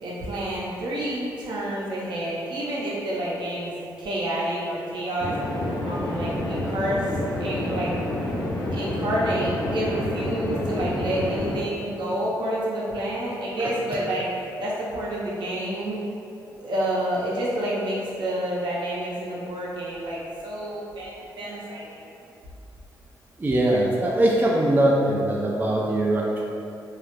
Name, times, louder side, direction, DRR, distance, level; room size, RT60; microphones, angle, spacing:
voice 1, 0.0-3.7 4.0-5.3 5.8-7.0 7.4-7.9 8.7-14.3 14.6-16.0 16.6-22.0, right 1 dB, 65° right, -6 dB, 0.7 m, -29 dB
sound 1, 5.2-11.5, left 1 dB, 65° left, 0.6 m, -28 dB
voice 2, 23.4-26.4, right 1 dB, 25° right, -3 dB, 0.3 m, -21 dB
2.4 x 2.0 x 3.0 m, 2.6 s
supercardioid pair, 60°, 8 cm